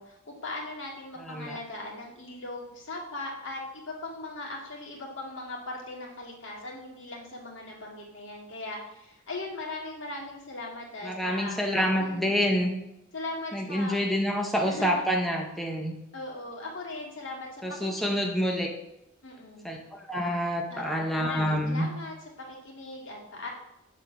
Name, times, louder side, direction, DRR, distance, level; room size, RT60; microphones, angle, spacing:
voice 1, 0.0-11.6 12.0-12.4 13.1-14.0 14.6-15.1 16.1-18.2 19.2-19.6 20.7-23.5, left 2 dB, 65° left, -3 dB, 2.0 m, -39 dB
voice 2, 1.2-1.6 11.0-12.7 13.5-15.9 17.6-18.7 19.6-21.9, equal, ahead, 0 dB, 0.6 m, -27 dB
7.6 x 3.7 x 5.5 m, 0.86 s
head